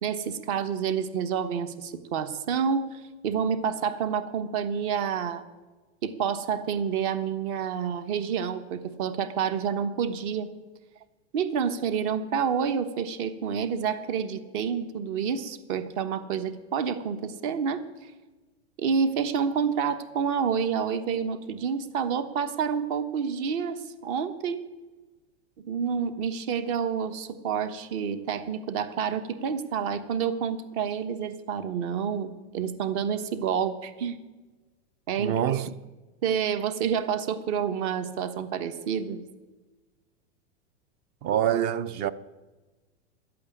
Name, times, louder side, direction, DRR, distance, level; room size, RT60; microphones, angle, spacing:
voice 1, 0.0-5.4 6.0-10.5 11.3-17.8 18.8-24.6 25.6-34.2 35.1-35.3 36.2-39.2, right 7 dB, 50° right, 1.3 m, -28 dB
voice 2, 35.2-35.7 41.2-42.1, right 10 dB, 30° right, 0.5 m, -25 dB
12.0 x 8.6 x 9.8 m
supercardioid pair, 150°, 34 cm